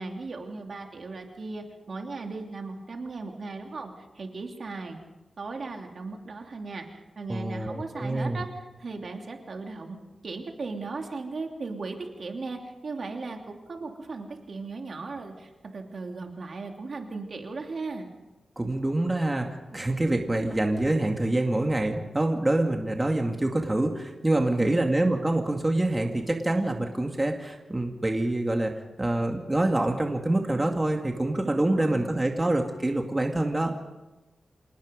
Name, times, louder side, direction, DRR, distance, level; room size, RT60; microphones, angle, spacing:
voice 1, 0.0-5.0 5.4-10.0 10.2-18.1 24.4-24.8 31.4-32.4, right 3 dB, 60° right, 3 dB, 2.9 m, -37 dB
voice 2, 7.3-8.4 18.6-28.7 29.0-33.8, right 1 dB, 20° right, 3 dB, 2.3 m, -26 dB
27.0 x 19.0 x 5.3 m, 1.1 s
wide cardioid pair, 90°, 0 cm